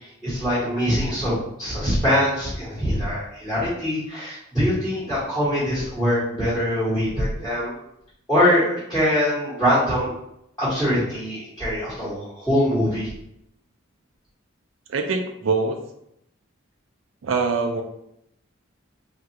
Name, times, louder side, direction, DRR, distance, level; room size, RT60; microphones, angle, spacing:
voice 1, 0.2-1.3 1.6-7.7 8.3-10.1 10.6-13.1, equal, ahead, -12 dB, 1.0 m, -23 dB
voice 2, 14.9-15.8 17.2-17.8, right 4 dB, 70° right, 5 dB, 0.4 m, -23 dB
3.3 x 2.3 x 2.8 m, 0.78 s
head